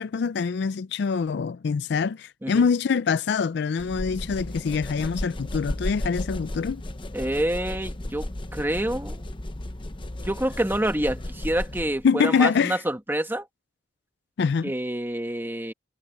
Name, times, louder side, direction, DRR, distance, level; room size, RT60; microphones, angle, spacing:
voice 1, 0.0-6.8 12.0-12.8 14.4-14.7, left 5 dB, 65° left, 0.4 m, -24 dB
sound 1, 3.8-12.1, left 1 dB, 30° left, 0.8 m, -34 dB
voice 2, 7.1-9.2 10.2-13.5 14.6-15.7, right 1 dB, 10° right, 1.6 m, -27 dB
head